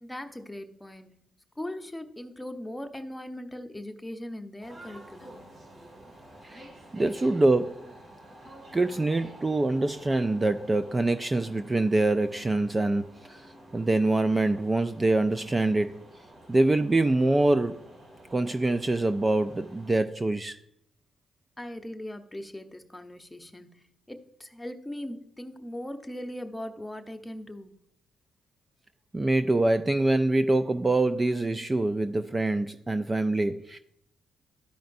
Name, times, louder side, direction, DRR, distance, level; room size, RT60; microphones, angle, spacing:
voice 1, 0.0-1.2 1.6-5.5 21.6-27.8, left 1 dB, 10° left, 0.9 m, -39 dB
sound 1, 4.6-20.0, right 1 dB, 50° right, 2.3 m, -50 dB
voice 2, 6.9-7.9 8.7-13.5 13.7-16.0 16.5-17.8 18.3-20.6 29.1-33.8, right 2 dB, 25° right, 0.4 m, -25 dB
13.0 x 5.1 x 2.6 m
supercardioid pair, 65°, 0 cm